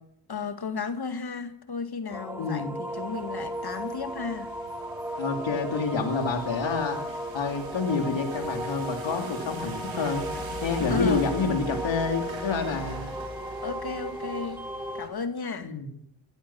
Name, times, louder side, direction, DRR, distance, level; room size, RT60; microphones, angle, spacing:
voice 1, 0.3-4.5 10.8-11.2 13.6-14.6 14.9-15.7, left 5 dB, 55° left, 2.0 m, -33 dB
sound 1, 2.1-15.1, equal, 5° right, 2.2 m, -36 dB
voice 2, 2.4-2.7 5.2-7.0 7.3-10.3 10.6-13.1 15.6-15.9, left 4 dB, 75° left, 2.9 m, -28 dB
sound 2, 2.9-15.1, right 3 dB, 85° right, 3.1 m, -43 dB
17.5 x 11.5 x 6.1 m
supercardioid pair, 45°, 46 cm